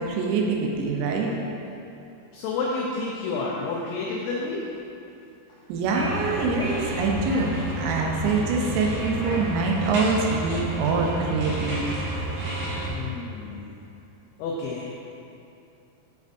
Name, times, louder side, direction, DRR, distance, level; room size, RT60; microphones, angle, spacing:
voice 1, 0.0-1.3 5.7-11.8, right 3 dB, 85° right, 0 dB, 3.4 m, -25 dB
voice 2, 2.3-4.8 5.5-5.6 12.2-12.4 12.9-13.8 14.4-14.9, left 3 dB, 90° left, -3 dB, 2.6 m, -30 dB
sound 1, 5.9-12.9, right 1 dB, 65° right, 3.3 m, -31 dB
9.3 x 5.2 x 2.6 m, 2.8 s
omnidirectional pair, 6.0 m